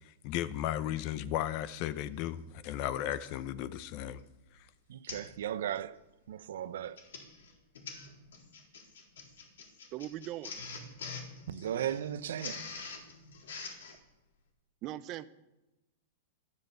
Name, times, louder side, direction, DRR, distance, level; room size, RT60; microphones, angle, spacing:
voice 1, 0.0-4.2 4.5-4.7, left 12 dB, 40° left, 0.8 m, -35 dB
Printer, 3.1-3.4 4.0-4.2 4.5-4.6 5.1-5.4 5.7-6.0 6.7-14.0, left 4 dB, 90° left, 3.8 m, -45 dB
voice 2, 4.9-6.0 6.3-7.0 11.5-12.7, right 10 dB, 75° right, 0.8 m, -36 dB
voice 3, 9.9-10.6 14.8-15.3, right 13 dB, 35° right, 0.7 m, -39 dB
13.0 x 11.0 x 6.9 m
supercardioid pair, 150°, 0 cm